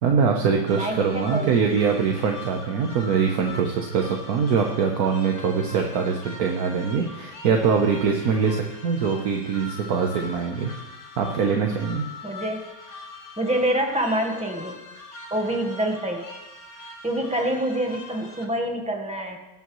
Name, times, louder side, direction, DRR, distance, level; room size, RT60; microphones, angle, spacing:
voice 1, 0.0-10.7 11.2-12.1, right 6 dB, 55° right, 2 dB, 1.2 m, -23 dB
sound 1, 0.7-18.4, left 3 dB, 40° left, 1.4 m, -42 dB
voice 2, 0.7-1.5 12.2-12.6 13.4-14.8 15.3-16.3 17.0-19.4, right 1 dB, 5° right, 2 dB, 0.8 m, -26 dB
20.0 x 9.3 x 3.1 m, 1.1 s
omnidirectional pair, 2.2 m